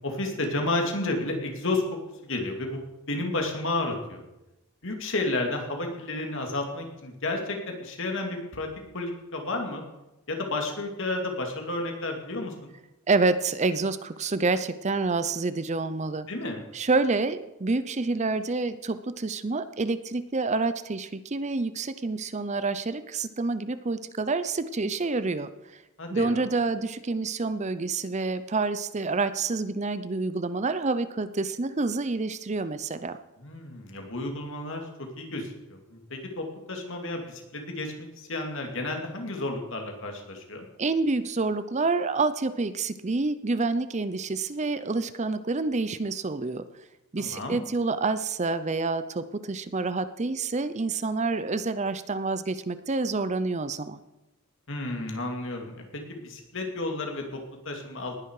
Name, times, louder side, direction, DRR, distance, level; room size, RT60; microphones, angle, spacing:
voice 1, 0.0-2.8 3.1-4.2 4.8-8.7 8.9-9.8 10.3-12.7 16.3-16.6 26.0-26.5 33.4-40.6 47.2-47.6 54.7-58.1, left 2 dB, 60° left, 2 dB, 2.8 m, -32 dB
voice 2, 13.1-16.3 16.7-25.5 26.1-33.2 40.8-46.6 47.1-54.0, right 3 dB, 30° right, 13 dB, 0.6 m, -28 dB
19.5 x 10.5 x 4.8 m, 0.97 s
head